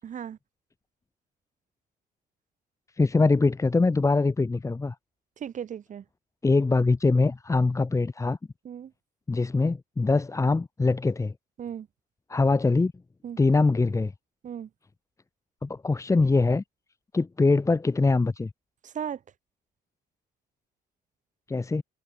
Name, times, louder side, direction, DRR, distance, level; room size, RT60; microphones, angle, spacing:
voice 1, 0.0-0.4 5.4-6.0 8.6-8.9 11.6-11.9 13.2-13.4 14.4-14.7 18.8-19.2, right 8 dB, 50° right, 7.6 m, -36 dB
voice 2, 3.0-4.9 6.4-8.4 9.3-11.3 12.3-12.9 13.4-14.1 15.6-16.6 17.1-18.5 21.5-21.8, left 3 dB, 20° left, 2.3 m, -23 dB
cardioid pair, 110°, 17 cm